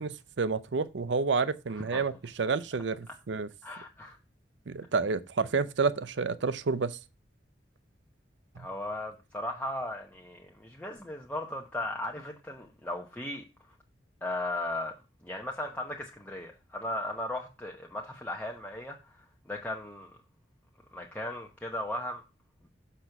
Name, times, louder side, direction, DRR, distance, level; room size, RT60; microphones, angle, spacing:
voice 1, 0.0-3.5 4.7-7.0 8.6-8.7, right 4 dB, 80° right, 0.6 m, -29 dB
voice 2, 3.6-4.2 8.6-13.4 14.2-14.9 15.2-20.2 20.9-22.2, left 1 dB, 10° left, 0.9 m, -37 dB
6.6 x 6.2 x 5.9 m
head